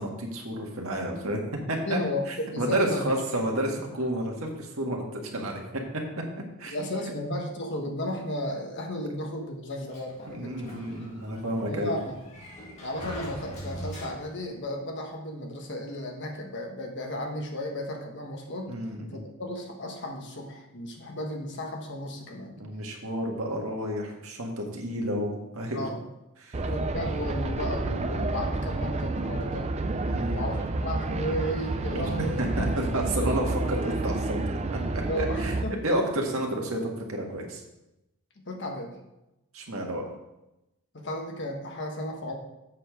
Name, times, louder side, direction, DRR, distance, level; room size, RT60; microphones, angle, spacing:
voice 1, 0.0-1.4 1.7-2.0 2.3-5.6 6.6-6.8 10.3-12.0 18.7-19.2 22.6-25.9 26.4-26.6 30.0-30.4 31.9-32.7 32.9-34.8 35.2-35.5 35.8-37.6 39.5-40.1, right 1 dB, 65° right, 1 dB, 1.7 m, -30 dB
voice 2, 1.9-2.2 2.5-3.0 6.7-10.7 11.5-12.1 12.8-18.8 19.1-22.5 25.7-26.0 26.6-29.7 30.3-32.7 35.1-35.8 38.4-38.9 40.9-42.3, left 1 dB, 55° left, 2 dB, 1.4 m, -34 dB
Sliding door, 9.9-14.6, equal, 30° left, 2.2 m, -42 dB
sound 1, 26.5-35.6, right 2 dB, 30° right, 0.5 m, -30 dB
7.6 x 7.0 x 5.0 m, 0.93 s
head